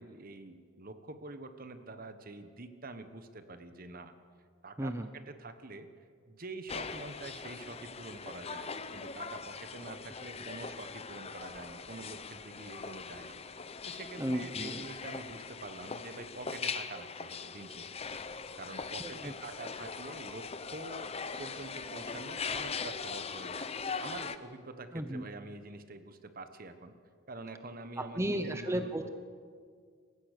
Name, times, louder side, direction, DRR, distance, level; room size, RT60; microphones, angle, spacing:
voice 1, 0.0-4.1 4.6-13.4 13.9-18.2 18.5-21.1 21.4-23.7 24.0-26.9 27.3-29.1, right 2 dB, 45° right, 9 dB, 1.3 m, -46 dB
sound 1, 6.7-24.4, left 5 dB, 30° left, 0.7 m, -41 dB
voice 2, 14.2-14.8 19.0-19.3 24.9-25.2 28.0-29.1, right 1 dB, 15° right, 8 dB, 0.8 m, -34 dB
28.0 x 15.5 x 6.7 m, 2.1 s
head